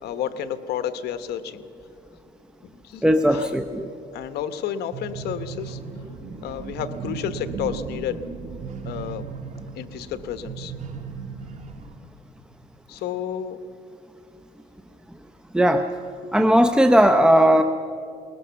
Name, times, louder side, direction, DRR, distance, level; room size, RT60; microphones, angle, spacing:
voice 1, 0.0-1.6 2.8-3.5 4.1-5.8 6.4-8.2 8.8-9.3 9.7-10.7 12.9-13.6, left 9 dB, 75° left, 11 dB, 1.2 m, -31 dB
voice 2, 3.0-3.9 15.5-15.9 16.3-17.6, equal, 5° right, 6 dB, 0.8 m, -17 dB
sound 1, 4.9-11.9, right 5 dB, 45° right, 2.0 m, -36 dB
21.0 x 20.0 x 7.0 m, 2.5 s
cardioid pair, 110°, 17 cm